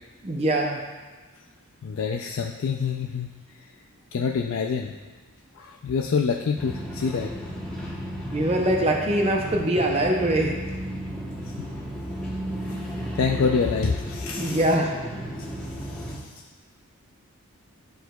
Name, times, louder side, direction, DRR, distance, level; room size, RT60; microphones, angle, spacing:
voice 1, 0.2-0.8 8.3-10.6 14.4-14.9, right 1 dB, 30° right, 0 dB, 0.5 m, -23 dB
voice 2, 1.8-3.3 4.1-4.9 5.6-7.3 11.6-11.7 12.4-12.5 13.2-14.6 15.4-15.5 15.9-16.2, left 5 dB, 65° left, 2 dB, 0.4 m, -26 dB
sound 1, 6.6-16.2, equal, 5° left, 0.9 m, -34 dB
11.0 x 4.6 x 2.3 m, 1.3 s
head